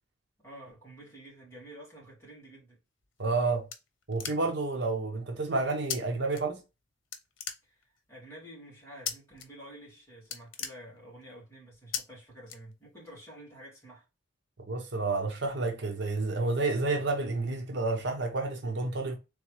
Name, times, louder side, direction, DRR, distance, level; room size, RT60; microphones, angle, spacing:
voice 1, 0.4-2.8 7.6-14.0, right 1 dB, 15° left, 2.7 m, -50 dB
sound 1, 3.0-4.7 5.9-6.0 6.3-6.8 7.1-8.1 9.1-9.5 9.8-9.9 10.2-11.4 11.9-12.0 12.5-13.1, left 7 dB, 85° left, 0.8 m, -38 dB
voice 2, 3.2-3.6 4.1-6.6 14.7-19.2, right 3 dB, 60° right, 0.9 m, -30 dB
3.9 x 3.4 x 3.2 m
head